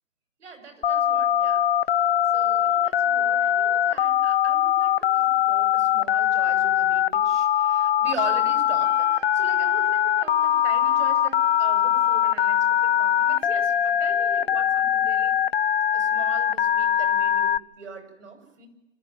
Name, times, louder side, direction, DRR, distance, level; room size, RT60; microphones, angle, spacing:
voice 1, 0.4-15.4 15.9-18.7, right 4 dB, 65° right, 6 dB, 7.2 m, -41 dB
Telephone, 0.8-17.6, left 10 dB, 50° left, 0.8 m, -22 dB
Trumpet, 8.7-14.5, right 10 dB, 40° right, 2.4 m, -46 dB
29.0 x 14.5 x 9.5 m, 0.89 s
figure-of-eight pair, 140°, 38 cm